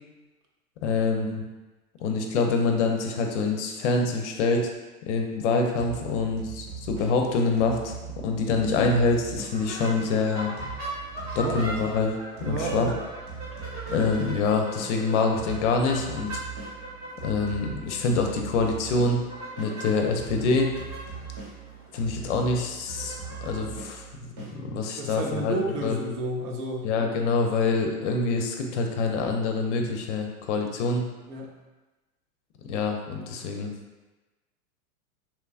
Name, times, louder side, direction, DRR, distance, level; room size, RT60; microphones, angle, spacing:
voice 1, 0.8-1.5 2.0-4.7 5.1-7.9 8.2-10.5 11.4-12.1 12.5-12.9 13.9-16.4 17.2-19.2 19.6-20.8 21.9-23.1 23.4-24.1 24.5-25.5 25.8-26.0 26.8-31.0 32.7-33.7, left 3 dB, 55° left, 3 dB, 0.5 m, -25 dB
sound 1, 5.8-10.2 10.6-15.0 15.4-19.8 20.2-24.6, right 6 dB, 45° right, 0.9 m, -40 dB
sound 2, 9.5-23.7, right 1 dB, 15° right, 0.3 m, -40 dB
voice 2, 12.4-12.9 25.0-26.9 31.3-31.5, right 2 dB, 85° right, 0 dB, 0.7 m, -31 dB
2.9 x 2.3 x 2.3 m, 1.1 s
hypercardioid pair, 125°, 45 cm